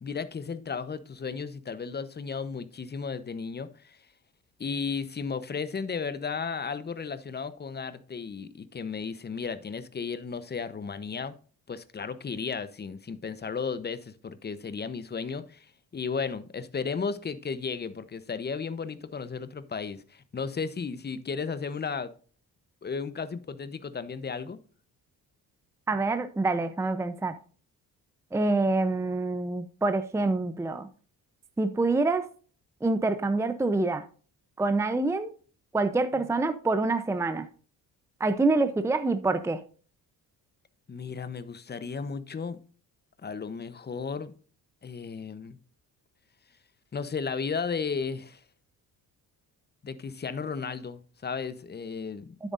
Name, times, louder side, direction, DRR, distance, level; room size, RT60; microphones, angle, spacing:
voice 1, 0.0-4.0 4.6-11.3 11.7-15.7 15.9-22.1 22.8-24.6 40.9-42.6 43.2-44.3 44.8-45.6 46.9-48.4 49.8-52.4, left 5 dB, 25° left, 0.8 m, -34 dB
voice 2, 25.9-27.3 28.3-30.9 31.6-32.3 32.8-34.0 34.6-35.3 35.7-37.5 38.2-39.6 52.4-52.5, right 3 dB, 10° right, 0.6 m, -26 dB
9.8 x 8.2 x 2.5 m
cardioid pair, 95°, 37 cm